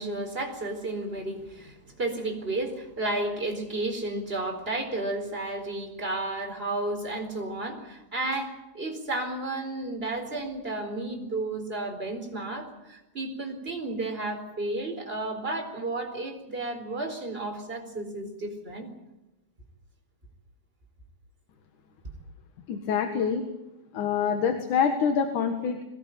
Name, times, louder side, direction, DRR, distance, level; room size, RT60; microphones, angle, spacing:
voice 1, 0.0-18.9, right 2 dB, 15° right, 3 dB, 4.2 m, -32 dB
voice 2, 22.7-23.4 23.9-25.8, left 7 dB, 60° left, 6 dB, 2.8 m, -26 dB
22.5 x 19.0 x 9.1 m, 0.97 s
omnidirectional pair, 4.5 m